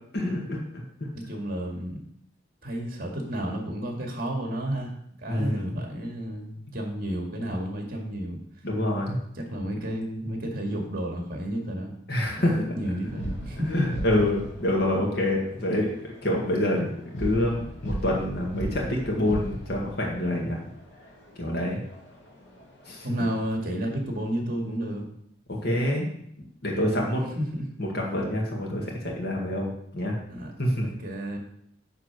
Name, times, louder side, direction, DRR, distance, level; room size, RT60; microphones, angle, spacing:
voice 1, 0.1-0.8 5.3-5.8 8.6-9.2 12.1-12.7 13.7-16.9 17.2-20.6 21.4-21.8 22.9-23.1 25.5-26.1 26.6-27.2 27.8-30.2 30.6-30.9, left 1 dB, 55° left, -2 dB, 1.8 m, -26 dB
voice 2, 1.1-2.0 2.6-4.9 5.2-8.4 9.4-11.9 12.4-14.0 23.0-25.1 27.2-27.7 30.3-30.5 30.8-31.4, right 1 dB, 50° right, 1 dB, 2.1 m, -31 dB
sound 1, 13.0-23.5, equal, 85° left, 2.0 m, -38 dB
9.6 x 3.8 x 6.1 m, 0.70 s
head